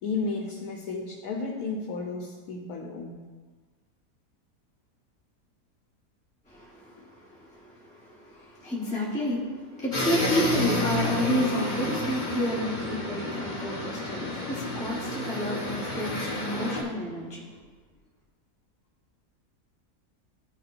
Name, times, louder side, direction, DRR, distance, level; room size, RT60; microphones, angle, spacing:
voice 1, 0.0-3.2 6.9-7.1, left 4 dB, 80° left, 0 dB, 1.2 m, -33 dB
voice 2, 6.5-17.5, equal, 5° left, -6 dB, 1.0 m, -31 dB
sound 1, 9.9-16.8, left 2 dB, 35° left, 1.0 m, -30 dB
12.5 x 4.3 x 2.5 m, 1.4 s
omnidirectional pair, 1.6 m